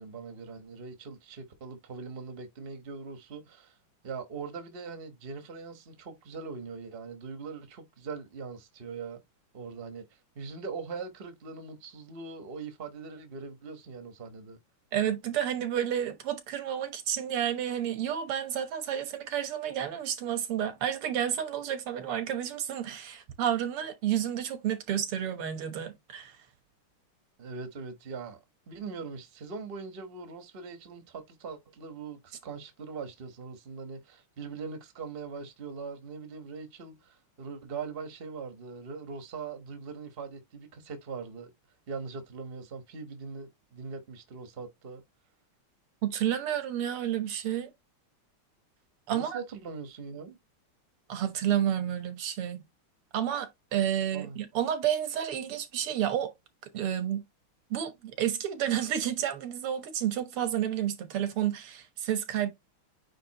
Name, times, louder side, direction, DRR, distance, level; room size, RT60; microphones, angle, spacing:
voice 1, 0.0-3.8 4.0-9.2 9.5-10.0 10.3-14.6 27.4-28.4 28.7-41.5 41.9-45.0 49.1-50.4 54.1-54.4, right 5 dB, 35° right, 1.1 m, -41 dB
voice 2, 14.9-26.4 46.0-47.7 49.1-49.4 51.1-52.6 53.1-56.3 56.7-57.2 57.7-62.5, right 10 dB, 85° right, 2.1 m, -30 dB
9.2 x 3.5 x 2.9 m
omnidirectional pair, 2.4 m